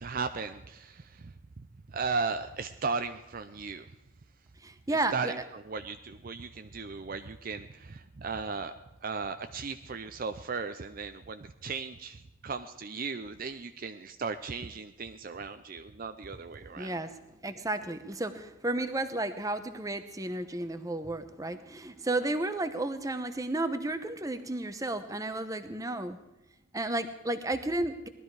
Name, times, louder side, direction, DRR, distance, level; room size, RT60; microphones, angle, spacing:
voice 1, 0.0-3.9 5.1-8.7 9.0-17.0, right 4 dB, 45° right, 8 dB, 0.5 m, -36 dB
voice 2, 4.6-5.3 16.8-17.1 17.4-26.2 26.7-28.1, right 2 dB, 15° right, 9 dB, 0.8 m, -32 dB
19.0 x 12.5 x 4.8 m, 0.99 s
head